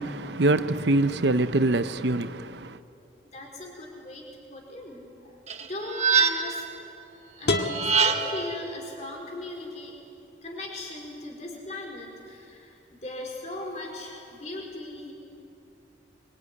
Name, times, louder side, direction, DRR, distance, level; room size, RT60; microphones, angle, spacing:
voice 1, 0.0-2.8, right 2 dB, 70° right, 0.8 m, -24 dB
voice 2, 3.3-6.7 7.4-10.0 10.4-15.1, left 2 dB, 40° left, 4.6 m, -38 dB
sound 1, 5.5-6.7 7.6-8.5, right 6 dB, 35° right, 1.4 m, -24 dB
sound 2, 7.4-9.4, left 2 dB, 60° left, 2.1 m, -31 dB
25.0 x 24.0 x 9.7 m
head